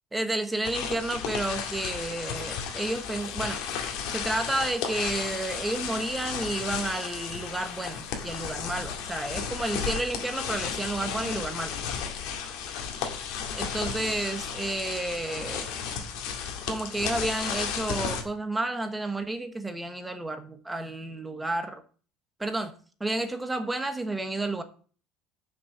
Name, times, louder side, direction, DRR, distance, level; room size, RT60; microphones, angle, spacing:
voice 1, 0.1-3.6 4.1-11.8 13.5-15.7 16.7-21.8 22.4-22.7 23.0-24.6, right 2 dB, 10° right, 8 dB, 1.1 m, -31 dB
sound 1, 0.6-18.2, left 7 dB, 70° left, 2.1 m, -34 dB
sound 2, 2.8-9.4, left 3 dB, 35° left, 3.5 m, -55 dB
7.1 x 6.2 x 7.0 m, 0.41 s
cardioid pair, 130°, 0 cm